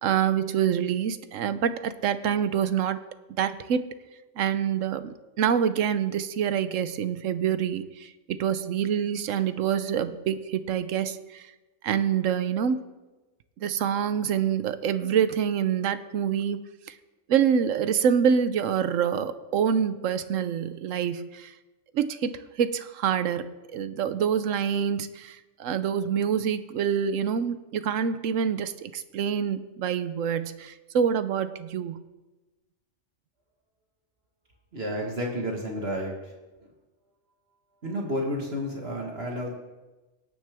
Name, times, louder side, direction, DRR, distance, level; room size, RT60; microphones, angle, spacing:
voice 1, 0.0-3.0 3.4-3.9 4.4-11.5 11.8-12.8 13.6-16.9 17.3-21.5 21.9-32.0, right 8 dB, 90° right, 12 dB, 1.1 m, -26 dB
voice 2, 34.7-36.3 37.8-39.5, equal, 55° right, -1 dB, 1.8 m, -31 dB
18.0 x 9.5 x 3.5 m, 1.1 s
omnidirectional pair, 1.3 m